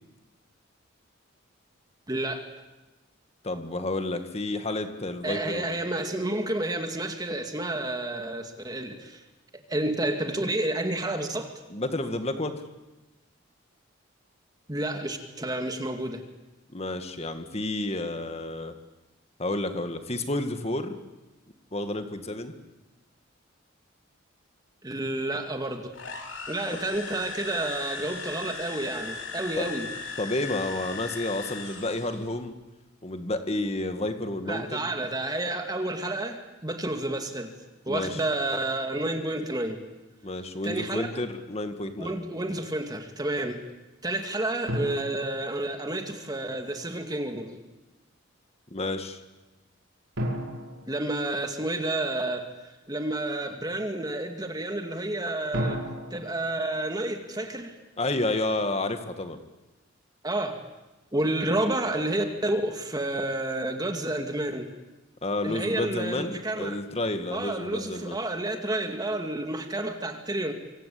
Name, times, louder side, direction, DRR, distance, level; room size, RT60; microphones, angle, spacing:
voice 1, 2.1-2.5 5.2-9.2 9.7-11.5 14.7-16.2 24.8-25.9 26.5-29.9 34.5-36.4 36.6-37.5 37.9-39.8 40.6-41.1 42.0-43.6 44.0-47.5 50.9-52.4 52.9-55.8 56.1-57.7 60.2-60.6 61.1-64.7 65.4-66.8 67.3-70.5, right 1 dB, 20° right, 5 dB, 2.3 m, -30 dB
voice 2, 3.4-5.8 11.7-12.6 16.7-18.7 19.4-21.0 21.7-22.5 26.7-26.8 29.6-29.7 30.2-32.5 33.0-34.9 37.9-38.2 40.2-42.2 48.7-49.2 58.0-59.4 65.2-68.2, left 2 dB, 30° left, 8 dB, 2.0 m, -30 dB
sound 1, 25.9-32.3, left 4 dB, 70° left, 4.0 m, -38 dB
sound 2, 44.7-46.3 50.2-52.0 55.5-57.8, equal, 65° right, 5.3 m, -35 dB
25.5 x 25.5 x 8.6 m, 1.1 s
head